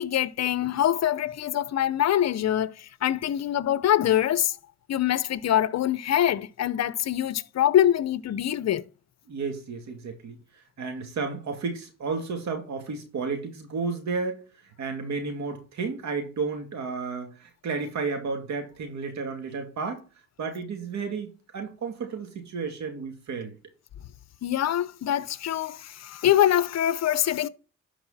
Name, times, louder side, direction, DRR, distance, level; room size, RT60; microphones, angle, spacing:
voice 1, 0.0-4.6 4.9-8.8 24.4-27.5, left 11 dB, 60° left, 0.8 m, -24 dB
voice 2, 9.3-14.4 14.8-20.0 20.4-23.6, right 4 dB, 65° right, 2.6 m, -32 dB
12.0 x 4.8 x 4.2 m
cardioid pair, 90°, 30 cm